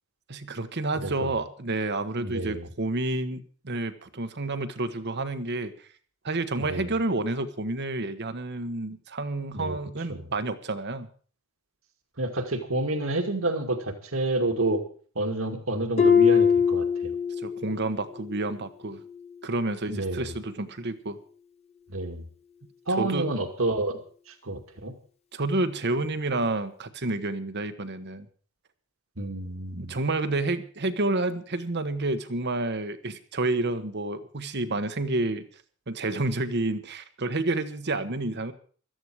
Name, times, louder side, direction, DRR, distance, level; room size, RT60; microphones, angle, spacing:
voice 1, 0.3-5.7 6.2-11.1 17.4-19.0 19.4-21.2 22.9-23.3 25.3-28.3 29.7-35.5 35.9-38.5, right 2 dB, 55° right, 10 dB, 1.2 m, -29 dB
voice 2, 1.0-1.3 2.2-2.7 6.6-6.9 9.5-9.8 10.1-10.3 12.2-14.8 15.2-17.1 19.9-20.4 21.9-22.3 22.9-24.0 24.3-24.9 29.2-30.0, right 2 dB, 70° right, 5 dB, 2.3 m, -29 dB
Harp, 16.0-17.7 18.1-18.5 19.1-19.2, left 6 dB, 30° left, 1.7 m, -22 dB
17.0 x 13.0 x 4.8 m, 0.44 s
head